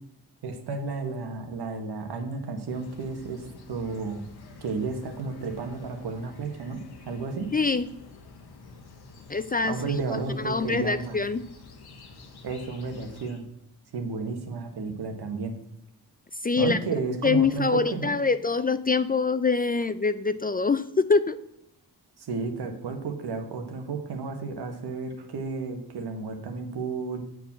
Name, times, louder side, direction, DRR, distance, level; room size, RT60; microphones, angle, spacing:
voice 1, 0.4-4.2 4.6-6.8 7.0-7.5 9.6-11.2 12.4-13.4 13.9-15.5 16.6-18.1 22.2-27.2, right 4 dB, 70° right, 5 dB, 1.5 m, -32 dB
sound 1, 2.7-13.4, left 3 dB, 70° left, 1.4 m, -48 dB
voice 2, 7.5-7.8 9.3-9.8 10.4-11.4 16.4-16.8 17.2-21.4, left 4 dB, 25° left, 13 dB, 0.4 m, -24 dB
7.7 x 4.8 x 7.3 m, 0.80 s
cardioid pair, 65°, 40 cm